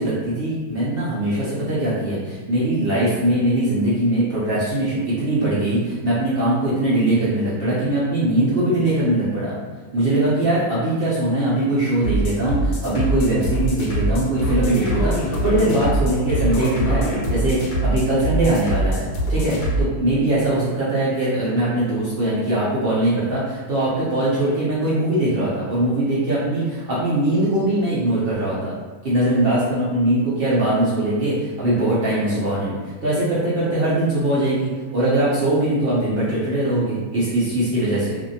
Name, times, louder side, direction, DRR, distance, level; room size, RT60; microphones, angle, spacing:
voice 1, 0.0-9.6 9.9-28.7 29.0-38.2, right 1 dB, 75° right, -9 dB, 0.5 m, -21 dB
sound 1, 12.0-19.8, right 1 dB, 70° left, 1.1 m, -23 dB
2.6 x 2.5 x 2.6 m, 1.3 s
omnidirectional pair, 1.8 m